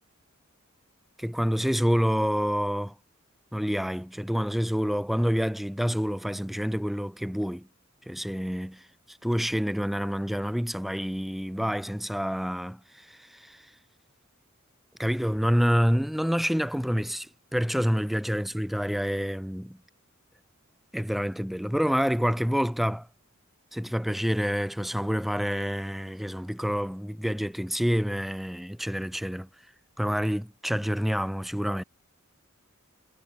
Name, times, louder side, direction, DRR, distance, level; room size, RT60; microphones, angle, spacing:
voice 1, 1.2-2.9 3.5-7.7 8.1-8.8 9.1-13.6 15.0-19.8 20.9-23.1 23.7-29.5 30.0-31.8, equal, ahead, 0.3 m, -28 dB
head